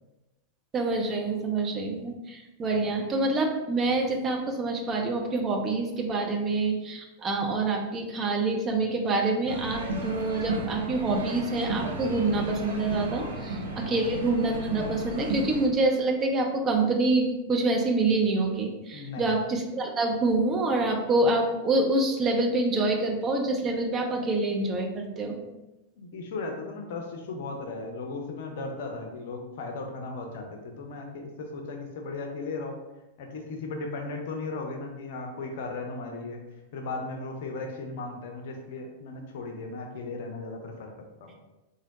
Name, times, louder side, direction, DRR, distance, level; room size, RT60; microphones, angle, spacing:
voice 1, 0.7-25.4, right 2 dB, 25° right, 1 dB, 0.6 m, -26 dB
sound 1, 9.5-15.7, right 2 dB, 70° right, 0.5 m, -33 dB
voice 2, 18.9-19.3 26.0-32.8 33.2-36.4 36.7-41.3, left 3 dB, 55° left, 3 dB, 0.6 m, -36 dB
3.8 x 2.0 x 4.0 m, 1.0 s
figure-of-eight pair, 90°, 0 cm